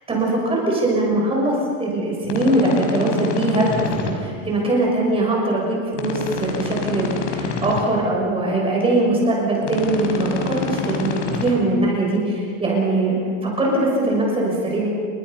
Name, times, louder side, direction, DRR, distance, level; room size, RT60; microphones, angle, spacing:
voice 1, 0.1-0.4 0.8-13.2 13.4-14.9, right 2 dB, 15° right, -2 dB, 6.3 m, -21 dB
sound 1, 2.2-4.1 5.9-7.8 9.6-11.5, left 5 dB, 70° left, 5.8 m, -27 dB
29.5 x 24.5 x 5.6 m, 2.2 s
supercardioid pair, 160°, 39 cm